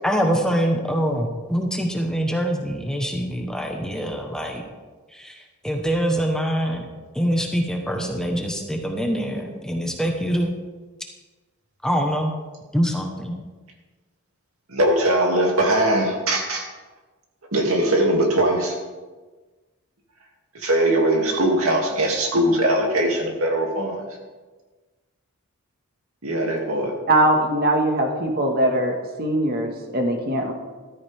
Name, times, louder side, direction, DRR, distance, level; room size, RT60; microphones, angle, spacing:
voice 1, 0.0-4.6 5.1-6.9 7.1-10.6 11.8-12.3 12.7-13.4, equal, 5° left, 2 dB, 1.2 m, -24 dB
voice 2, 14.7-16.6 17.5-18.7 20.5-24.1 26.2-26.9, right 1 dB, 75° right, 0 dB, 2.7 m, -21 dB
voice 3, 27.1-30.5, right 1 dB, 45° right, 3 dB, 1.9 m, -21 dB
14.0 x 13.5 x 3.6 m, 1.3 s
head